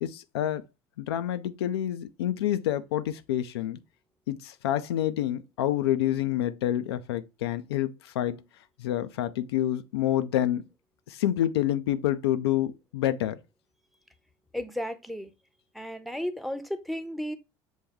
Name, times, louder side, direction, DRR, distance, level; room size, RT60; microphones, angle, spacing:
voice 1, 0.0-0.6 1.0-3.8 4.3-8.4 8.8-10.6 11.1-13.4, left 12 dB, 90° left, 0.4 m, -28 dB
voice 2, 14.5-15.3 15.7-17.4, equal, ahead, 0.7 m, -34 dB
6.2 x 2.2 x 3.5 m
hypercardioid pair, 75°, 13 cm